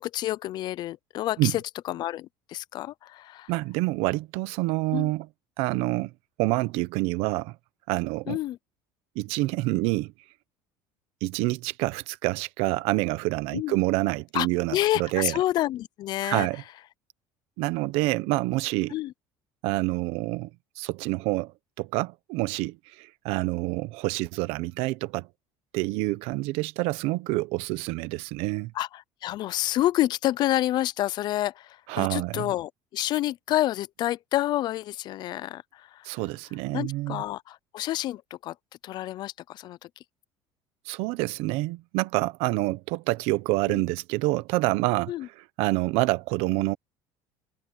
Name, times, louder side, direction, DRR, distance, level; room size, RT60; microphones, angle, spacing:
voice 1, 0.0-1.6 1.9-3.5 4.9-5.1 8.3-8.6 13.5-13.8 14.3-16.5 18.9-19.1 28.8-36.1 36.7-38.5 38.8-39.9 43.7-43.8 45.1-45.3, left 14 dB, 45° left, 0.4 m, -29 dB
voice 2, 3.5-5.3 5.6-6.1 6.4-7.6 7.9-8.4 9.1-10.1 11.2-15.4 16.2-16.6 17.6-18.9 19.6-20.5 20.8-21.5 21.8-25.3 25.7-28.7 31.9-32.5 36.0-37.2 40.8-45.1 45.6-46.8, right 20 dB, 75° right, 1.0 m, -27 dB
cardioid pair, 160°, 10 cm